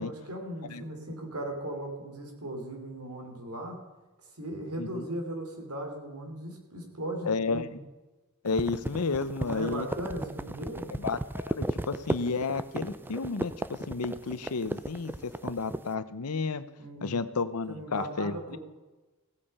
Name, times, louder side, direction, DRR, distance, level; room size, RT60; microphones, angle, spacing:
voice 1, 0.0-3.8 4.2-7.8 9.4-10.9 16.8-17.2 17.7-18.6, right 1 dB, 85° right, 3 dB, 3.1 m, -38 dB
voice 2, 7.2-7.7 8.4-9.9 11.0-16.7 17.0-18.6, left 4 dB, 85° left, 14 dB, 0.7 m, -32 dB
sound 1, 8.4-15.9, right 1 dB, 10° right, 0.4 m, -34 dB
16.5 x 8.8 x 5.4 m, 1.2 s
head